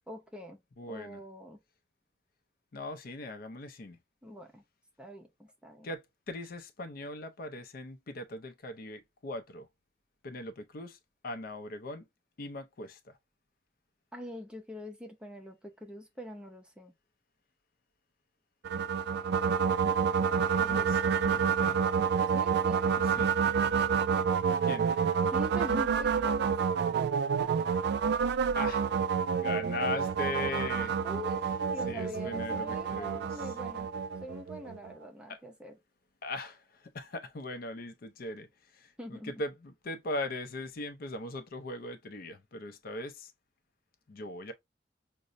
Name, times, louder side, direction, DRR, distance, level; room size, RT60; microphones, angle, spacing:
voice 1, 0.1-0.6 0.9-1.6 4.2-4.6 5.0-5.9 14.1-16.9 20.6-20.9 22.3-22.8 25.3-26.6 31.0-31.4 31.7-33.9 34.2-35.8 39.0-39.3, equal, 5° right, 0.5 m, -43 dB
voice 2, 0.8-1.2 2.7-4.0 5.8-9.7 10.2-12.1 12.4-13.2 20.7-21.8 22.9-23.3 24.6-24.9 28.6-29.0 29.4-30.9 31.9-33.3 35.3-35.4 36.2-43.3 44.1-44.5, left 2 dB, 50° left, 0.5 m, -40 dB
sound 1, 18.6-34.9, right 6 dB, 60° right, 0.3 m, -29 dB
5.2 x 2.0 x 2.5 m
head